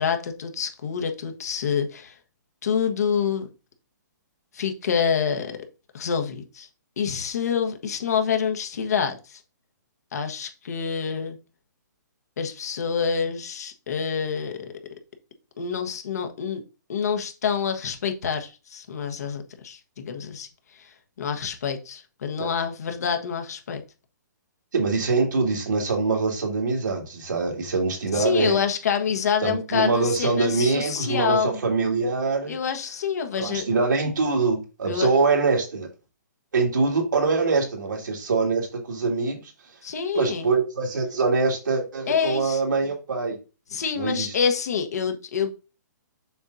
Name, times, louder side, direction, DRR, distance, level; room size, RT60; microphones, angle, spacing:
voice 1, 0.0-2.1 2.6-3.5 4.5-5.6 5.9-6.7 7.0-9.4 10.1-11.4 12.4-14.7 15.6-16.6 16.9-23.8 28.1-31.6 32.5-33.7 34.8-35.1 39.8-40.5 42.1-42.6 43.7-45.5, left 7 dB, 60° left, 1.3 m, -27 dB
voice 2, 24.7-28.6 29.4-32.5 33.4-35.9 36.5-39.4 40.1-43.4 44.0-44.3, right 4 dB, 85° right, 2.4 m, -24 dB
6.9 x 5.3 x 2.7 m
hypercardioid pair, 170°, 10 cm